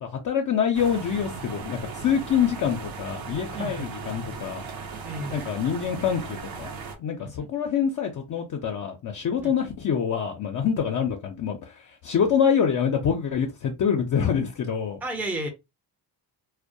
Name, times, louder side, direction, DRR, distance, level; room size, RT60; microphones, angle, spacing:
voice 1, 0.0-4.6 5.3-6.7 7.0-15.0, left 7 dB, 45° left, 0.5 m, -26 dB
sound 1, 0.7-7.0, right 5 dB, 50° right, 0.7 m, -37 dB
voice 2, 3.5-3.9 5.0-5.5 7.4-7.5 9.4-9.5 15.0-15.5, right 1 dB, 5° right, 0.5 m, -32 dB
2.2 x 2.1 x 2.6 m
cardioid pair, 90°, 45 cm